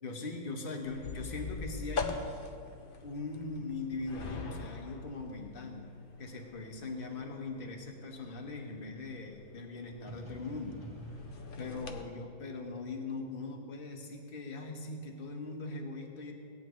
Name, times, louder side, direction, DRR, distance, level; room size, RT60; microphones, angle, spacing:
voice 1, 0.0-2.2 3.0-10.8 11.6-16.3, left 3 dB, 35° left, 1 dB, 1.3 m, -41 dB
sound 1, 0.8-12.0, left 4 dB, 50° left, 0.6 m, -43 dB
sound 2, 10.1-13.9, right 1 dB, 5° right, 1.6 m, -50 dB
17.0 x 9.6 x 3.1 m, 2.3 s
omnidirectional pair, 1.8 m